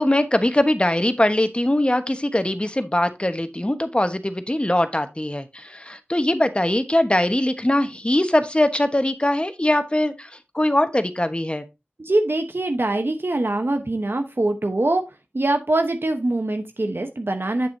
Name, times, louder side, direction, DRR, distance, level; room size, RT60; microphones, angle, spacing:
voice 1, 0.0-11.6, left 1 dB, 25° left, 1.1 m, -21 dB
voice 2, 12.0-15.0 15.3-17.7, right 2 dB, 65° right, 0.9 m, -23 dB
8.3 x 7.6 x 2.7 m
wide cardioid pair, 45°, 4 cm